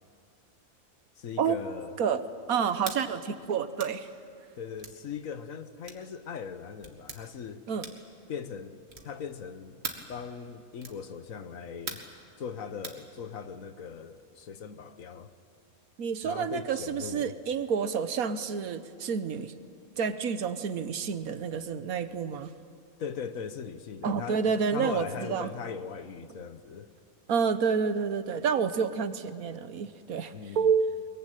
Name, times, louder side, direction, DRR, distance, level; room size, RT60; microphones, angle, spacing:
voice 1, 1.2-1.9 4.6-7.6 8.3-8.8 9.0-9.8 10.1-12.0 12.4-15.3 16.2-17.3 23.0-26.9 30.3-30.7, left 6 dB, 65° left, 11 dB, 1.4 m, -39 dB
voice 2, 2.5-4.1 7.7-7.9 16.0-19.5 20.0-22.5 24.0-25.5 27.3-31.1, right 6 dB, 75° right, 12 dB, 1.4 m, -29 dB
sound 1, 2.8-3.0 3.8-4.0 4.8-5.0 5.8-6.1 6.8-7.2 7.8-8.1 8.9-9.2 9.8-10.1 10.8-11.0 11.9-12.2 12.8-13.0, right 3 dB, 45° right, 2.3 m, -40 dB
23.0 x 22.0 x 9.1 m, 2.5 s
omnidirectional pair, 1.6 m